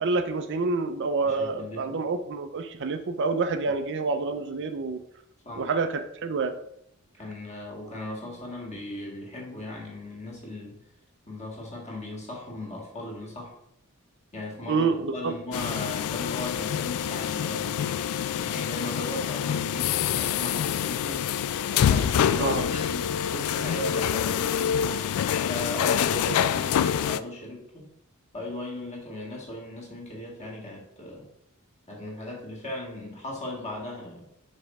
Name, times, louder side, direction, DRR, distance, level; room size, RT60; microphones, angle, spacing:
voice 1, 0.0-5.0 5.6-6.5 14.7-15.3 22.4-22.6, right 4 dB, 55° right, 9 dB, 0.5 m, -27 dB
voice 2, 1.2-2.1 5.4-5.7 7.2-10.8 11.3-13.5 14.3-17.8 18.4-21.2 21.7-24.9 25.5-27.9 28.3-31.3 31.9-34.3, left 1 dB, 30° left, -1 dB, 1.7 m, -37 dB
sound 1, 15.5-27.2, left 9 dB, 75° left, 0.3 m, -26 dB
5.2 x 4.3 x 4.7 m, 0.76 s
head